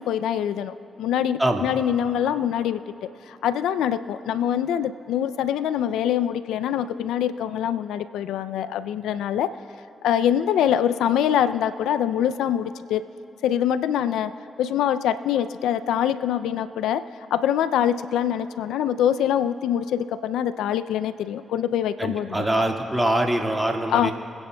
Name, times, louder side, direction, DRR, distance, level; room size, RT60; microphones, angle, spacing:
voice 1, 0.0-2.8 3.3-9.5 10.0-13.0 13.4-14.3 14.6-17.0 17.3-22.4 23.9-24.1, left 10 dB, 85° left, 13 dB, 0.3 m, -24 dB
voice 2, 22.0-24.1, right 1 dB, 15° right, 2 dB, 1.8 m, -23 dB
25.0 x 9.8 x 2.2 m, 2.9 s
hypercardioid pair, 40°, 0 cm